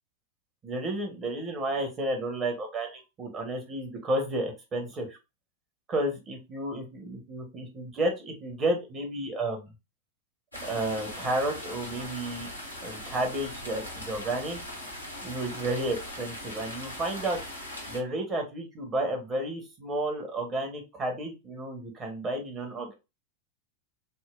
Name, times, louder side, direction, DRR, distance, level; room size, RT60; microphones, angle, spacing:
voice 1, 0.6-5.2 5.9-9.7 10.6-12.5 12.8-14.6 15.2-17.4 17.9-22.9, right 1 dB, 25° right, 3 dB, 1.1 m, -32 dB
sound 1, 10.5-18.0, left 1 dB, 90° left, 1.0 m, -40 dB
4.1 x 2.1 x 2.5 m, 0.26 s
figure-of-eight pair, 90°, 0 cm